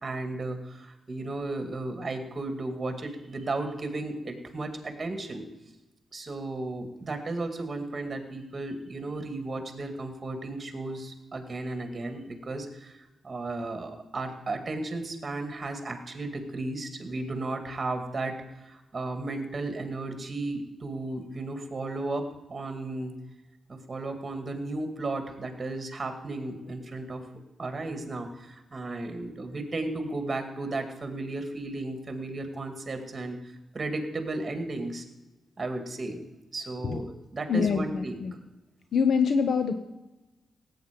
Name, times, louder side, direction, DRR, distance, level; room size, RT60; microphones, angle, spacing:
voice 1, 0.0-5.5 6.1-23.1 23.7-27.3 27.6-35.0 35.6-36.2 36.5-38.2, right 2 dB, 30° right, 6 dB, 2.2 m, -34 dB
voice 2, 37.5-38.3 38.9-39.7, left 6 dB, 65° left, 8 dB, 0.8 m, -25 dB
17.0 x 8.7 x 5.2 m, 1.0 s
cardioid pair, 105°, 0 cm